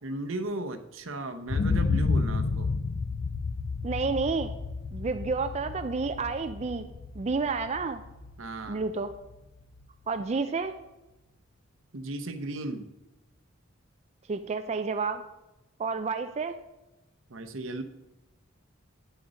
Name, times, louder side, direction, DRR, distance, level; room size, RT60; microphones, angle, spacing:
voice 1, 0.0-2.8 8.4-8.8 11.9-12.9 17.3-17.8, right 2 dB, 75° right, 9 dB, 0.9 m, -36 dB
sound 1, 1.5-9.4 9.8-9.9, left 4 dB, 50° left, 0.5 m, -31 dB
voice 2, 3.8-4.5 4.9-6.9 7.2-8.0 8.7-9.1 10.1-10.7 14.3-15.2 15.8-16.6, right 4 dB, 35° right, 8 dB, 0.4 m, -30 dB
9.2 x 8.0 x 5.0 m, 1.0 s
head